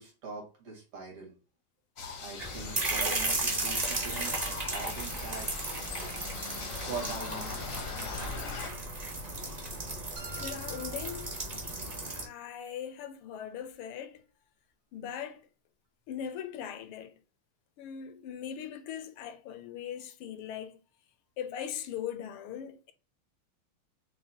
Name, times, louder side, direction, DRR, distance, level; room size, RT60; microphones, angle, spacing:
voice 1, 0.0-1.3 2.2-5.5 6.8-7.5 8.1-8.5, right 4 dB, 80° right, 2.8 m, -42 dB
sound 1, 2.0-8.7, left 5 dB, 65° left, 0.8 m, -41 dB
sound 2, 2.4-12.2, right 2 dB, 45° right, 0.5 m, -35 dB
sound 3, 10.2-12.2, right 6 dB, 65° right, 1.0 m, -49 dB
voice 2, 10.4-11.4 12.0-14.2 14.9-15.4 16.1-17.2 17.8-20.8 21.4-22.9, left 9 dB, 80° left, 1.4 m, -40 dB
6.4 x 2.2 x 2.7 m
omnidirectional pair, 2.4 m